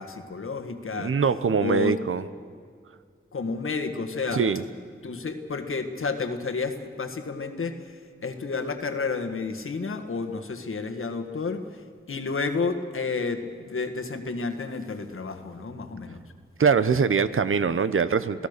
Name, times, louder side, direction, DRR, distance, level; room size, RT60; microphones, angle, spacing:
voice 1, 0.0-1.1 1.6-1.9 3.3-4.4 5.0-7.7 8.2-11.6 12.1-16.2, left 4 dB, 90° left, 7 dB, 1.7 m, -31 dB
voice 2, 0.9-2.3 4.3-4.6 16.6-18.5, right 5 dB, 85° right, 13 dB, 0.9 m, -23 dB
27.5 x 17.0 x 6.7 m, 2.1 s
wide cardioid pair, 80°, 21 cm